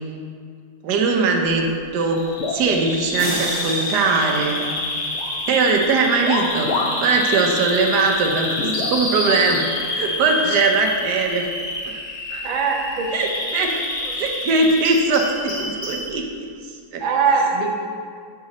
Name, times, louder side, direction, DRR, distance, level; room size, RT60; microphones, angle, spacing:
voice 1, 0.8-4.6 5.5-6.7 7.0-9.7 9.9-11.5 11.8-12.0 12.3-12.5 13.1-13.8 14.1-16.5 16.9-17.0, right 4 dB, 85° right, 2 dB, 1.3 m, -20 dB
Bird vocalization bird call bird song, 2.1-16.1, left 2 dB, 55° left, 1.3 m, -28 dB
sound 1, 2.3-3.3 3.7-4.8 5.1-5.4 6.2-7.1 7.4-7.5 8.5-9.4 10.3-10.4 11.3-11.5, left 4 dB, 70° left, 0.6 m, -29 dB
sound 2, 3.2-5.5, right 1 dB, 20° right, 0.9 m, -33 dB
voice 2, 12.4-13.1 14.0-14.1 17.0-17.7, right 5 dB, 45° right, 0 dB, 0.7 m, -21 dB
8.0 x 3.8 x 4.0 m, 2.1 s
omnidirectional pair, 1.7 m